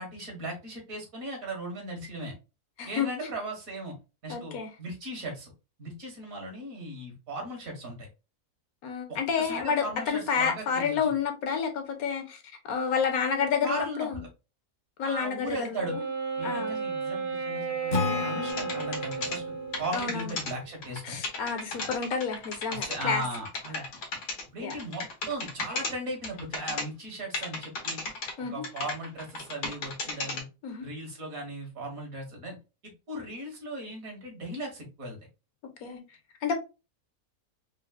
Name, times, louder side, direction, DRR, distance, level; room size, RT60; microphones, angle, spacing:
voice 1, 0.0-2.3 2.9-4.0 4.2-5.5 5.8-8.1 9.1-11.0 13.6-14.1 15.0-15.9 16.4-19.4 19.8-21.2 21.8-21.9 22.7-23.9 24.5-28.0 28.5-30.5 30.8-32.6 32.8-35.2, right 1 dB, 65° right, 1.8 m, -37 dB
voice 2, 2.8-3.3 4.3-4.7 8.8-12.4 12.6-14.2 15.0-16.0 16.4-16.9 19.9-20.3 21.0-23.2 24.6-24.7 28.4-28.6 30.6-30.9 35.8-36.0 36.4-36.5, left 6 dB, 70° left, 1.1 m, -30 dB
Wind instrument woodwind instrument, 15.8-20.3, right 5 dB, 40° right, 0.9 m, -34 dB
Acoustic guitar / Strum, 17.9-21.4, left 4 dB, 50° left, 0.6 m, -34 dB
sound 1, 18.5-19.4 19.7-20.5 20.8-21.0 21.2-24.4 24.7-25.9 26.2-26.8 27.3-28.3 28.6-30.4, left 3 dB, 90° left, 1.6 m, -34 dB
4.5 x 2.0 x 2.3 m
omnidirectional pair, 1.6 m